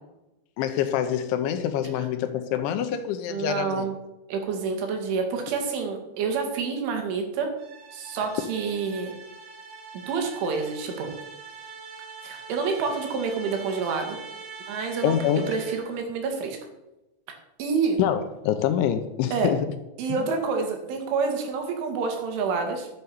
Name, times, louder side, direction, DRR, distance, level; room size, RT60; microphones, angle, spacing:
voice 1, 0.6-3.9 15.0-15.4 18.0-19.6, left 9 dB, 80° left, 9 dB, 3.0 m, -25 dB
voice 2, 3.3-4.0 4.3-7.5 7.9-9.1 9.9-11.1 12.2-14.2 14.7-15.2 15.5-16.6 17.6-18.0 19.3-19.5 20.0-22.9, right 5 dB, 75° right, 4 dB, 4.4 m, -28 dB
sound 1, 7.6-16.0, right 4 dB, 90° right, 5.8 m, -43 dB
12.0 x 7.9 x 7.0 m, 0.96 s
omnidirectional pair, 5.7 m